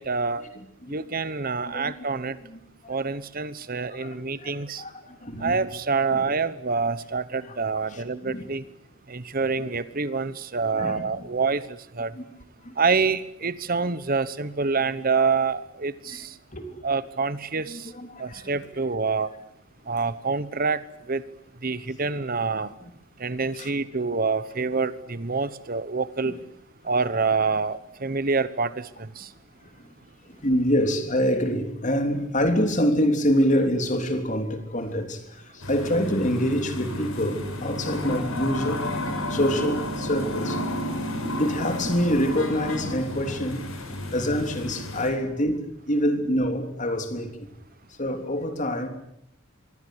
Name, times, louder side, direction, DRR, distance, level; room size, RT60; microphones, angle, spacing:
voice 1, 0.0-0.4 0.9-2.4 2.9-4.8 5.4-8.6 9.1-11.6 12.0-12.1 12.8-16.3 16.8-17.9 18.2-19.3 19.9-20.8 21.1-21.2 21.6-22.7 23.2-26.3 26.8-28.9 29.2-29.3, right 4 dB, 45° right, 1.1 m, -26 dB
voice 2, 0.5-1.0 1.7-1.9 2.5-2.6 2.8-2.9 4.0-5.6 6.1-6.3 7.5-7.6 7.9-8.5 10.7-11.3 12.2-12.3 12.6-12.7 16.1-16.3 16.5-16.7 17.7-18.6 23.5-23.7 26.3-26.4 30.3-35.2 35.5-38.8 39.3-40.6 41.4-47.3 48.0-48.9, equal, 35° left, 3.5 m, -26 dB
sound 1, 35.6-45.1, left 1 dB, 90° left, 7.4 m, -31 dB
26.5 x 23.0 x 8.1 m
head